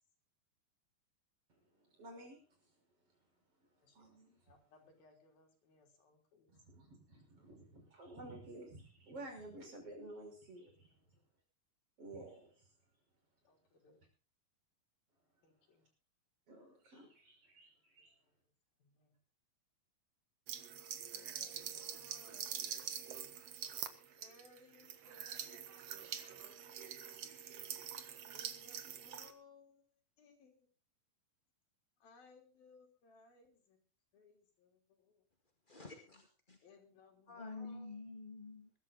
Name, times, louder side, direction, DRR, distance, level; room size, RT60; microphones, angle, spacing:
voice 1, 1.5-2.8 3.6-3.7 3.9-4.5 6.5-10.7 12.0-12.7 16.5-18.2, right 2 dB, 40° right, 6.7 m, -53 dB
voice 2, 3.7-6.6 7.4-7.5 10.6-11.2 13.4-14.1 15.4-15.9 17.0-17.1 17.8-19.2 21.1-23.0 24.2-27.0 28.3-30.7 32.0-33.8 34.1-35.2 36.6-37.9, left 3 dB, 80° left, 5.3 m, -65 dB
sound 1, 20.5-29.3, right 9 dB, 55° right, 1.9 m, -45 dB
voice 3, 35.7-36.6 37.3-38.7, left 3 dB, 20° left, 1.3 m, -49 dB
21.5 x 12.5 x 3.9 m
omnidirectional pair, 4.1 m